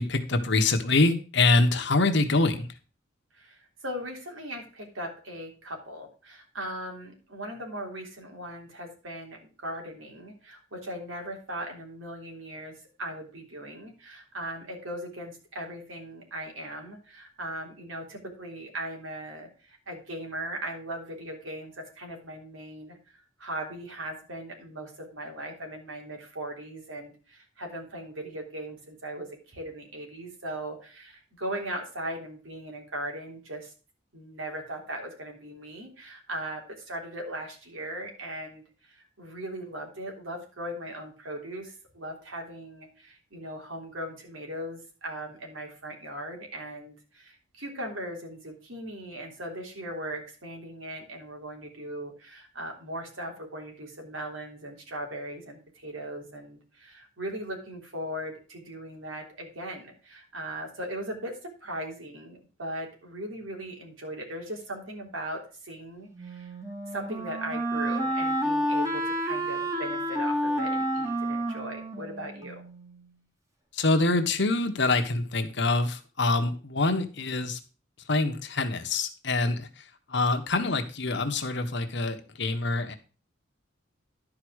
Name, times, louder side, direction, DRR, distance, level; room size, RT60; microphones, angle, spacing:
voice 1, 0.0-2.7 73.7-77.6 78.1-79.7 80.1-83.0, left 3 dB, 60° left, 7 dB, 1.2 m, -25 dB
voice 2, 3.3-33.7 34.1-66.5 66.9-72.7, right 1 dB, 85° right, 2 dB, 3.4 m, -39 dB
Wind instrument woodwind instrument, 66.2-73.0, right 1 dB, 15° right, 1.9 m, -30 dB
11.5 x 5.0 x 6.3 m, 0.36 s
head